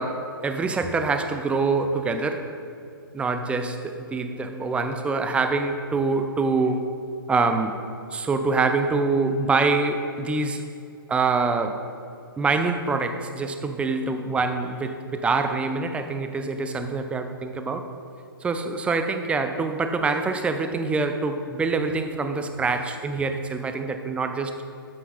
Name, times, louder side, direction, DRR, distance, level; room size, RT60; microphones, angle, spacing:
voice 1, 0.0-2.5 3.1-7.0 7.3-7.8 8.1-10.7 11.1-11.8 12.4-17.9 18.4-24.5, right 3 dB, 10° right, 7 dB, 0.6 m, -25 dB
13.5 x 8.4 x 3.8 m, 2.6 s
hypercardioid pair, 130°, 12 cm